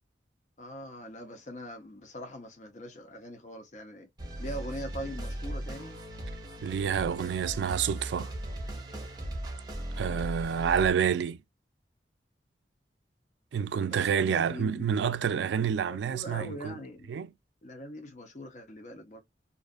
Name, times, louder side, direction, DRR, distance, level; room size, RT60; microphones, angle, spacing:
voice 1, 0.6-4.1 4.4-6.0 13.7-15.2 15.6-17.2 17.6-19.2, equal, 40° left, 0.7 m, -42 dB
sound 1, 4.2-10.9, right 1 dB, 25° right, 0.7 m, -38 dB
voice 2, 6.6-8.3 10.0-11.4 13.5-16.8 17.1-17.3, right 7 dB, 85° right, 0.3 m, -28 dB
2.6 x 2.4 x 2.3 m
head